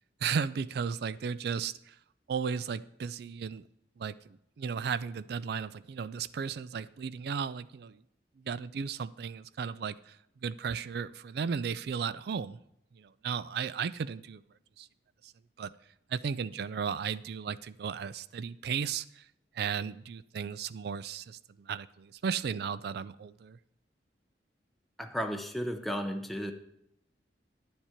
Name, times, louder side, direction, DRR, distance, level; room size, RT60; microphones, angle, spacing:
voice 1, 0.2-1.9 2.3-3.6 4.0-4.2 4.6-8.0 8.5-10.1 10.4-12.6 13.0-14.4 14.8-14.9 15.6-15.7 16.1-19.2 19.6-23.6, right 6 dB, 65° right, 17 dB, 0.4 m, -35 dB
voice 2, 25.0-26.5, equal, ahead, 5 dB, 0.6 m, -34 dB
9.8 x 7.3 x 4.4 m, 0.79 s
head